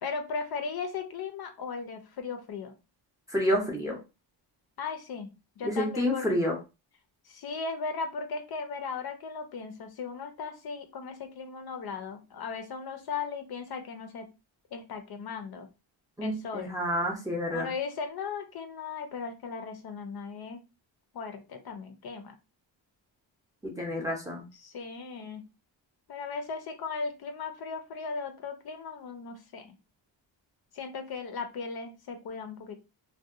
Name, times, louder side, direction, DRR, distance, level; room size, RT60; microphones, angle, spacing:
voice 1, 0.0-2.7 4.8-5.3 5.6-6.3 7.2-14.3 14.7-15.7 16.2-16.7 17.5-20.6 21.1-22.3 24.5-25.4 26.1-29.7 30.7-32.7, left 5 dB, 55° left, 6 dB, 0.5 m, -37 dB
voice 2, 3.3-4.0 5.6-6.6 16.2-17.7 23.6-24.4, equal, 10° right, 0 dB, 0.5 m, -29 dB
2.7 x 2.2 x 2.3 m, 0.28 s
wide cardioid pair, 145°, 46 cm